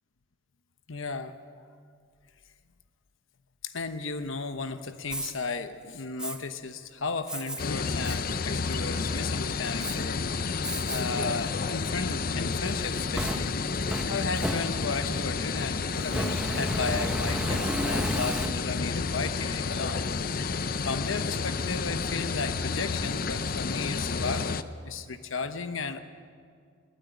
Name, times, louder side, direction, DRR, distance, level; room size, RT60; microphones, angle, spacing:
voice 1, 0.9-1.3 3.6-10.2 10.9-13.5 13.8-20.0 20.9-26.0, left 4 dB, 80° left, 9 dB, 1.0 m, -34 dB
Fire, 5.0-5.3 6.2-6.4 7.3-7.6 8.0-8.2 8.7-9.1 9.8-10.0 10.6-11.0 11.5-11.6 12.7-15.1 16.0-18.9, equal, 5° right, 1.2 m, -33 dB
sound 1, 7.6-24.6, left 4 dB, 45° left, 0.6 m, -30 dB
21.5 x 16.0 x 9.3 m, 2.2 s
head